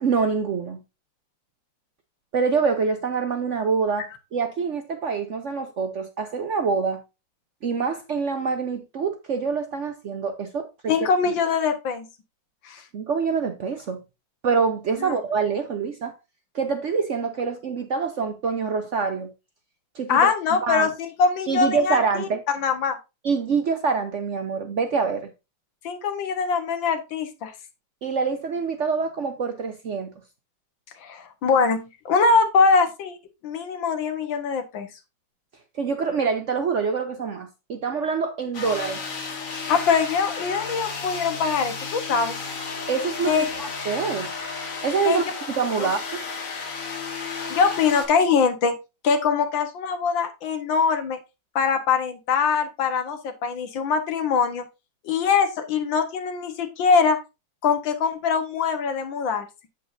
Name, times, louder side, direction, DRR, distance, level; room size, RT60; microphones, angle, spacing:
voice 1, 0.0-0.8 2.3-7.0 7.6-10.9 12.9-14.0 14.4-16.1 16.5-19.3 19.9-20.3 20.6-20.9 21.5-22.4 23.2-25.3 28.0-30.1 35.7-39.0 42.9-44.3 44.8-45.2 45.6-46.2, right 5 dB, 60° right, 0.8 m, -25 dB
voice 2, 10.9-12.1 12.6-12.8 15.0-15.2 20.1-22.3 22.5-23.0 25.8-27.5 31.0-33.2 33.4-34.9 39.7-42.4 43.3-43.5 45.1-45.2 45.8-45.9 47.5-48.8 49.0-51.2 51.6-54.7 55.0-57.2 57.6-59.5, left 5 dB, 85° left, 1.9 m, -23 dB
sound 1, 38.5-48.1, left 5 dB, 45° left, 1.8 m, -33 dB
7.9 x 7.7 x 2.6 m
omnidirectional pair, 2.0 m